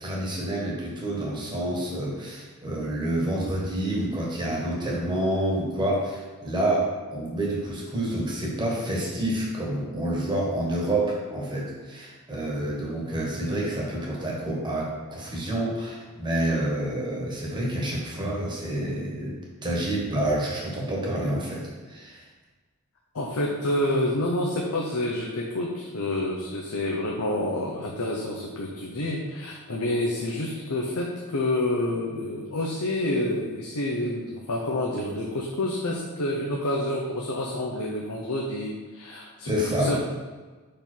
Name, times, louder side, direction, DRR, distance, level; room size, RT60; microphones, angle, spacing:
voice 1, 0.0-22.2 39.4-39.9, right 1 dB, 20° right, -4 dB, 1.5 m, -28 dB
voice 2, 23.1-40.0, left 1 dB, 70° left, -2 dB, 0.8 m, -28 dB
5.4 x 5.1 x 4.5 m, 1.3 s
head